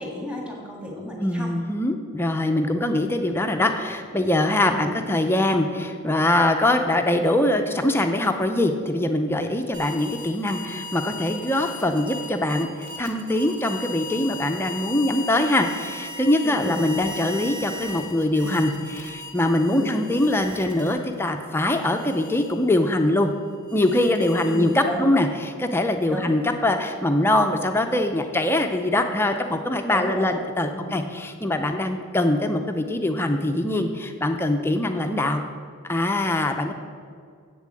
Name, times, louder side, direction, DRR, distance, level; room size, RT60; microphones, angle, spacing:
voice 1, 0.0-1.6 4.6-4.7 16.4-17.1 19.7-19.9 24.5-25.1 26.1-26.4 29.9-30.3 30.7-30.9, equal, 5° right, -2 dB, 1.7 m, -32 dB
voice 2, 1.2-23.3 23.7-35.4 35.8-36.7, left 1 dB, 10° left, 5 dB, 0.5 m, -23 dB
sound 1, 9.7-21.2 21.6-25.0, left 2 dB, 85° right, 2.0 m, -38 dB
8.2 x 7.1 x 7.6 m, 2.1 s
head